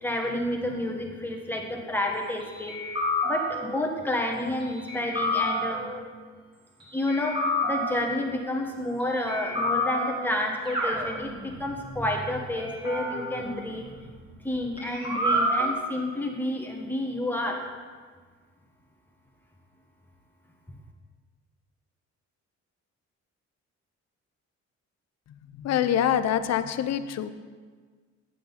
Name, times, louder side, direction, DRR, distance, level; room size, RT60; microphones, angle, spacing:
voice 1, 0.0-2.7 3.2-5.9 6.9-13.8 14.4-17.6, left 1 dB, 5° left, 0 dB, 1.4 m, -30 dB
sound 1, 2.7-3.8 4.9-6.0 7.1-8.2 9.3-10.4 10.6-11.7 12.6-14.4 14.8-15.7, left 1 dB, 15° right, 2.2 m, -29 dB
voice 2, 25.6-27.3, left 10 dB, 60° left, 12 dB, 0.6 m, -25 dB
8.4 x 7.2 x 4.0 m, 1.5 s
cardioid pair, 90°, 30 cm